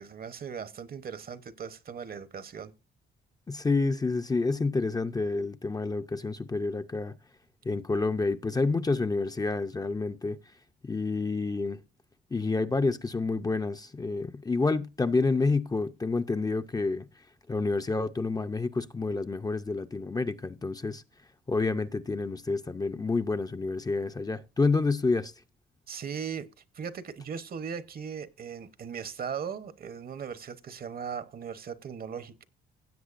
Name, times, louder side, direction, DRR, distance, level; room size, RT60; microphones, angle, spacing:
voice 1, 0.0-2.7 25.9-26.5 26.7-32.4, right 7 dB, 50° right, 0.9 m, -38 dB
voice 2, 3.5-7.1 7.6-10.4 10.8-11.8 12.3-17.1 17.5-21.0 21.5-25.3, left 3 dB, 20° left, 0.5 m, -28 dB
16.5 x 7.8 x 2.5 m
cardioid pair, 90°, 20 cm